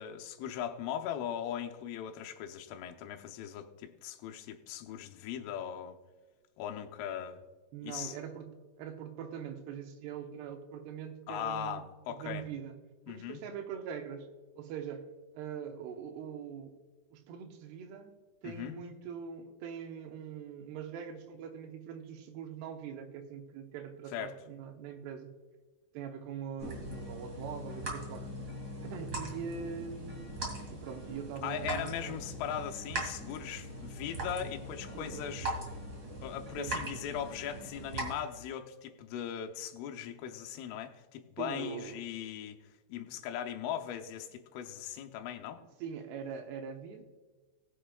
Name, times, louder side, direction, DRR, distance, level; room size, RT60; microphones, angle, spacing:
voice 1, 0.0-6.0 6.6-7.4 7.8-8.2 11.3-12.5 13.1-13.4 18.4-18.8 24.1-24.3 31.4-35.6 36.2-42.6 42.9-45.6, left 9 dB, 90° left, 4 dB, 3.4 m, -39 dB
voice 2, 7.7-11.8 12.1-12.8 13.1-14.3 14.6-15.1 15.3-16.8 17.1-18.1 18.4-25.3 25.9-28.3 28.8-30.4 30.7-32.2 34.9-35.3 36.6-36.7 41.4-42.1 45.6-47.0, right 7 dB, 75° right, 4 dB, 2.7 m, -42 dB
sound 1, 26.6-38.1, right 1 dB, 50° right, 0.9 m, -40 dB
20.0 x 7.7 x 2.3 m, 1.3 s
omnidirectional pair, 5.5 m